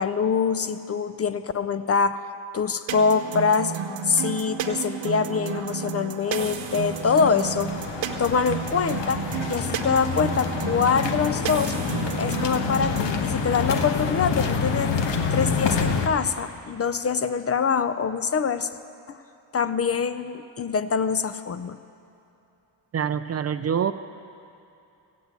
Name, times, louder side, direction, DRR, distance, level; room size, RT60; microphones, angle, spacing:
voice 1, 0.0-2.2 2.5-7.7 8.2-11.8 12.2-14.9 15.3-18.7 19.1-19.2 19.5-21.8, left 6 dB, 35° left, 12 dB, 0.5 m, -24 dB
sound 1, 2.9-13.2, right 7 dB, 85° right, 0.9 m, -32 dB
sound 2, 6.4-16.1, left 5 dB, 75° left, 1.2 m, -28 dB
voice 2, 22.9-23.9, right 8 dB, 35° right, 11 dB, 0.4 m, -25 dB
16.0 x 8.3 x 8.0 m, 2.7 s
cardioid pair, 100°, 44 cm